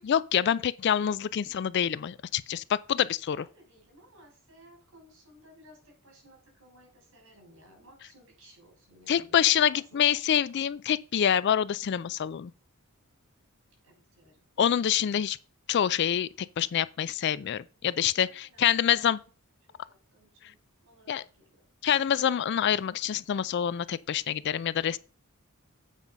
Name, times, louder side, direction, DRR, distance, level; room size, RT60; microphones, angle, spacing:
voice 1, 0.1-3.4 9.1-12.5 14.6-15.4 15.7-16.3 16.6-19.2 21.1-21.2 21.8-25.0, left 9 dB, 50° left, 0.3 m, -26 dB
voice 2, 3.3-9.3 9.7-10.1 13.8-14.4 18.2-18.7 19.9-21.2, equal, 60° right, 5.2 m, -57 dB
8.3 x 5.3 x 5.2 m
head